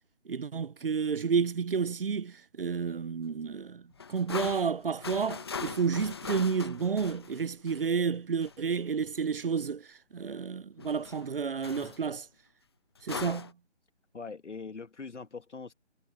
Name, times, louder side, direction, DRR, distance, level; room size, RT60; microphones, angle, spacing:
voice 1, 0.3-3.8 4.1-12.3 13.0-13.5, right 6 dB, 50° right, 0.6 m, -31 dB
sound 1, 3.9-8.0 8.4-8.6 10.8-11.4 11.6-12.0 13.0-13.5, left 6 dB, 20° left, 1.0 m, -40 dB
voice 2, 14.1-15.7, left 4 dB, 85° left, 2.2 m, -42 dB
figure-of-eight pair, 170°, 35 cm